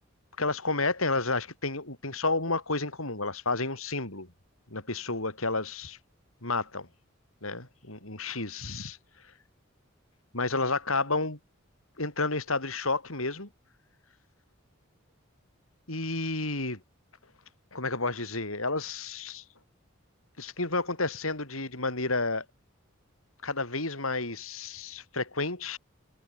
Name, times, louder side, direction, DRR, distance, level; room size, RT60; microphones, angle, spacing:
voice 1, 0.4-4.3 4.7-6.0 6.4-6.9 7.4-9.0 10.3-11.4 12.0-13.5 15.9-16.8 17.7-19.4 20.4-22.5 23.4-25.8, left 3 dB, 85° left, 7.2 m, -31 dB
head